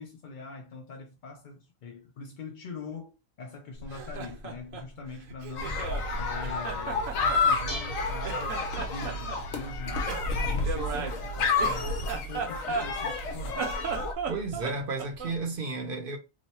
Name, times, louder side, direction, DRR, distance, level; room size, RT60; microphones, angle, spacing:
voice 1, 0.0-5.8 6.1-13.8, left 4 dB, 60° left, 0.5 m, -43 dB
Laughter, 3.8-6.1 6.4-8.0 8.2-9.4 10.1-13.2 13.5-15.4, right 5 dB, 75° right, 1.1 m, -36 dB
sound 1, 5.6-14.1, left 4 dB, 85° left, 1.1 m, -30 dB
Dishes pots and pans, 7.2-14.6, right 4 dB, 40° left, 0.9 m, -45 dB
voice 2, 14.3-16.2, right 3 dB, 55° right, 0.7 m, -32 dB
3.0 x 2.0 x 4.1 m
omnidirectional pair, 1.4 m